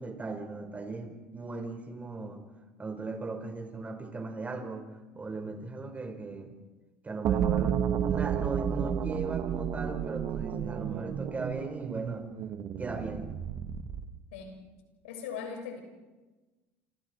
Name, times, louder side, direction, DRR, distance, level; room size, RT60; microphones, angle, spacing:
voice 1, 0.0-2.5 2.8-4.9 5.1-6.5 7.0-12.3 12.8-13.3, right 3 dB, 25° right, 5 dB, 5.5 m, -38 dB
sound 1, 7.2-14.2, right 9 dB, 55° right, 2.1 m, -31 dB
voice 2, 15.0-15.8, left 6 dB, 85° left, 3 dB, 6.6 m, -39 dB
29.0 x 28.5 x 4.8 m, 1.2 s
hypercardioid pair, 80°, 6 cm